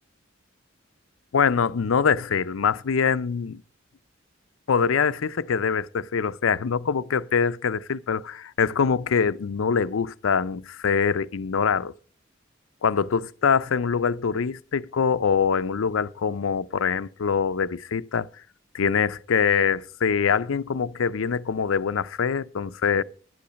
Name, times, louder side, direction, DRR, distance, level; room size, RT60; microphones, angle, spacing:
voice 1, 1.3-3.6 4.7-11.9 12.8-18.3 18.7-23.0, left 6 dB, 85° left, 0.5 m, -24 dB
11.0 x 8.6 x 5.1 m
head